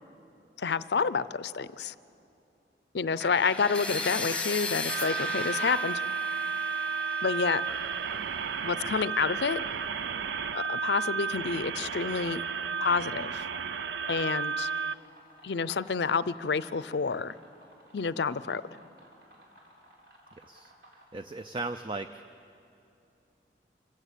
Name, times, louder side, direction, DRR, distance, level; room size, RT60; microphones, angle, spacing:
voice 1, 0.6-1.9 2.9-6.0 7.2-7.6 8.6-9.6 10.5-12.4 12.8-13.4 14.1-14.7 15.4-17.4 17.9-18.6, left 5 dB, 75° left, 16 dB, 0.5 m, -29 dB
sound 1, 3.2-9.1, left 3 dB, 5° left, 1.1 m, -37 dB
sound 2, 4.9-14.9, right 6 dB, 90° right, 0.5 m, -33 dB
sound 3, 11.6-21.6, equal, 65° right, 4.4 m, -56 dB
voice 2, 21.1-22.2, right 3 dB, 30° right, 9 dB, 0.4 m, -36 dB
26.0 x 15.0 x 8.4 m, 2.7 s
head